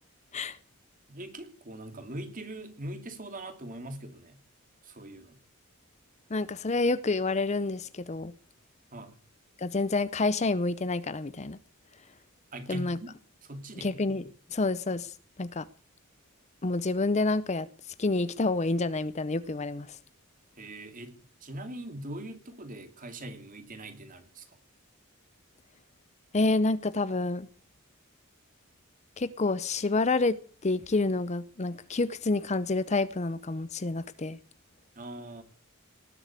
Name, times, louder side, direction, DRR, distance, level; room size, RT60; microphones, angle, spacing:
voice 1, 1.1-4.4 4.8-5.4 8.9-9.2 12.5-13.1 13.4-13.9 20.6-24.5 35.0-35.4, right 1 dB, 40° right, 2.6 m, -42 dB
voice 2, 6.3-8.3 9.6-11.6 12.7-13.0 13.8-14.2 14.5-15.1 15.4-15.7 16.6-17.7 18.0-20.0 26.3-27.5 29.2-30.4 30.6-34.4, left 3 dB, 30° left, 0.6 m, -28 dB
19.0 x 7.9 x 8.2 m
head